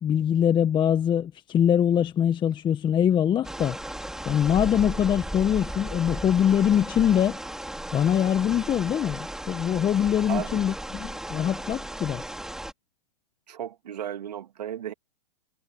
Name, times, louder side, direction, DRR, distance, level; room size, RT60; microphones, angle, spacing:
voice 1, 0.0-3.8 4.2-7.4 7.9-12.2, left 9 dB, 20° left, 1.3 m, -23 dB
sound 1, 3.4-12.7, right 1 dB, ahead, 3.6 m, -36 dB
voice 2, 10.3-10.6 13.5-14.9, right 10 dB, 80° right, 2.7 m, -34 dB
hypercardioid pair, 120°, 21 cm